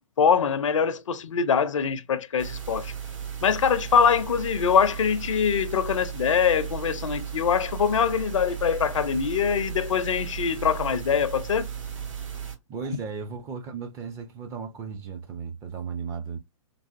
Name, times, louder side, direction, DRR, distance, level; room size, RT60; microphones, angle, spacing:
voice 1, 0.2-2.9 3.4-11.7, left 7 dB, 60° left, 0.4 m, -23 dB
sound 1, 2.4-12.6, right 8 dB, 65° right, 1.7 m, -35 dB
voice 2, 12.7-16.4, right 5 dB, 15° right, 0.4 m, -35 dB
3.3 x 2.4 x 2.5 m
figure-of-eight pair, 115°, 18 cm